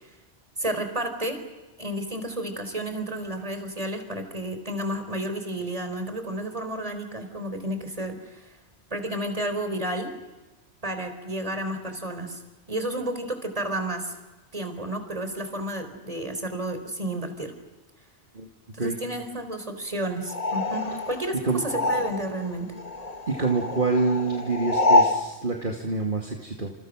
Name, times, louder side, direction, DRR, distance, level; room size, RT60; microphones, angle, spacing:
voice 1, 0.6-1.4 1.8-8.5 8.9-10.1 10.8-12.4 12.7-14.2 14.5-17.5 18.7-22.7, right 1 dB, 35° right, 7 dB, 4.2 m, -31 dB
sound 1, 20.3-22.5 22.8-25.3, left 2 dB, 35° left, 1.7 m, -25 dB
voice 2, 23.3-26.7, right 3 dB, 50° right, 1 dB, 2.6 m, -26 dB
29.0 x 28.0 x 6.5 m, 1.2 s
omnidirectional pair, 1.1 m